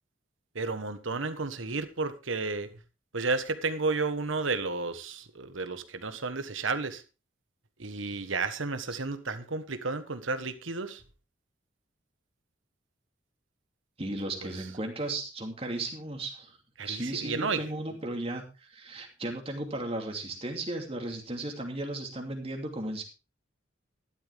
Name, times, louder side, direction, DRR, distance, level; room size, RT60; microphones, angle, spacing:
voice 1, 0.5-2.7 3.1-7.0 7.8-11.0 14.4-14.6 16.8-17.6, right 3 dB, 80° right, 11 dB, 1.4 m, -32 dB
voice 2, 14.0-16.6 16.8-18.4 18.7-23.0, right 2 dB, 30° right, 3 dB, 2.8 m, -35 dB
13.0 x 11.5 x 3.6 m, 0.30 s
head